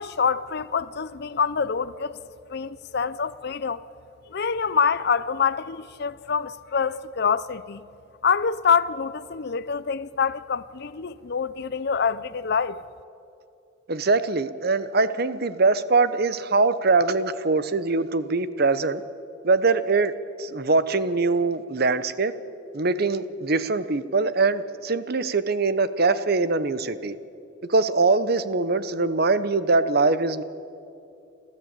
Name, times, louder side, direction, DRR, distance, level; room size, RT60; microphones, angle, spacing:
voice 1, 0.0-2.2 2.5-3.8 4.3-7.8 8.2-12.8, left 6 dB, 55° left, 0.5 m, -26 dB
voice 2, 13.9-19.0 19.4-20.1 20.4-22.3 22.7-27.1 27.7-30.4, right 3 dB, 50° right, 0.9 m, -22 dB
29.5 x 13.0 x 8.9 m
head